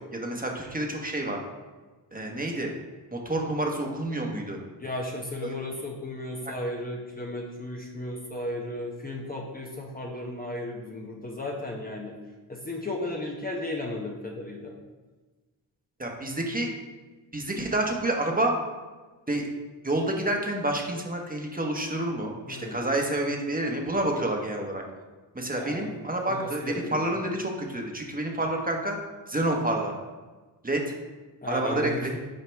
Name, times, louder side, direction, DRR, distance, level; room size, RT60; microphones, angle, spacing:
voice 1, 0.1-1.4 2.1-2.7 3.1-4.6 5.4-5.6 6.4-6.5 16.0-16.7 17.3-18.5 19.3-19.5 19.8-24.8 25.3-29.0 29.3-29.9 30.6-30.8 31.5-32.1, right 1 dB, 20° right, 1 dB, 1.2 m, -28 dB
voice 2, 4.8-12.1 12.5-14.7 22.5-22.9 25.6-25.9 26.3-27.2 31.4-32.2, left 1 dB, 20° left, -1 dB, 0.9 m, -35 dB
7.8 x 4.9 x 3.5 m, 1.3 s
cardioid pair, 80°, 46 cm